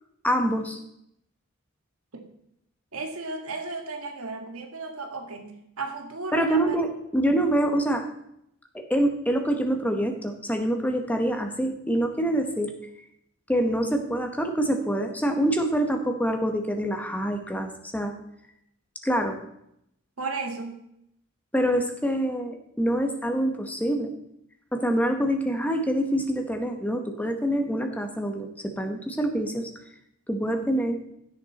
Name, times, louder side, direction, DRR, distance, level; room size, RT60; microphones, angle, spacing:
voice 1, 0.2-0.8 6.3-8.1 8.7-12.7 13.5-18.1 19.0-19.4 21.5-24.1 24.7-29.7 30.3-31.0, right 1 dB, 5° left, 5 dB, 1.1 m, -26 dB
voice 2, 2.9-6.8 7.3-7.4 20.2-20.8, right 3 dB, 85° right, 4 dB, 1.8 m, -34 dB
15.5 x 6.5 x 4.2 m, 0.77 s
head